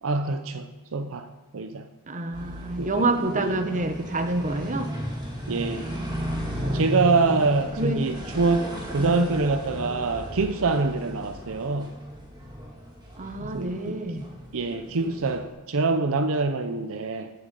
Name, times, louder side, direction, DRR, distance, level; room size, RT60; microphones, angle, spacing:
voice 1, 0.0-1.9 2.8-3.6 5.5-5.9 6.6-12.0 13.4-14.0 14.5-17.3, right 3 dB, 65° right, 8 dB, 0.7 m, -25 dB
voice 2, 2.1-4.9 7.8-8.0 9.0-9.3 13.2-14.2, right 2 dB, 35° right, 7 dB, 1.0 m, -27 dB
sound 1, 2.3-15.5, equal, 20° right, 2.0 m, -35 dB
14.5 x 7.2 x 5.3 m, 1.1 s
head